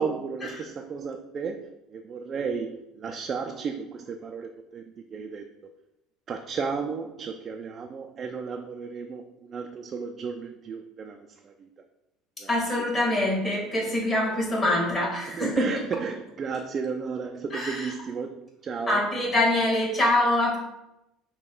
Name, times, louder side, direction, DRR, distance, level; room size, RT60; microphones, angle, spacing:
voice 1, 0.0-4.8 5.1-5.4 6.3-11.7 12.4-12.6 15.3-19.1, right 5 dB, 40° right, 4 dB, 0.3 m, -33 dB
voice 2, 12.5-15.7 17.5-17.9 18.9-20.6, left 1 dB, 30° left, -2 dB, 1.7 m, -24 dB
6.1 x 2.3 x 3.7 m, 0.91 s
supercardioid pair, 105°, 0 cm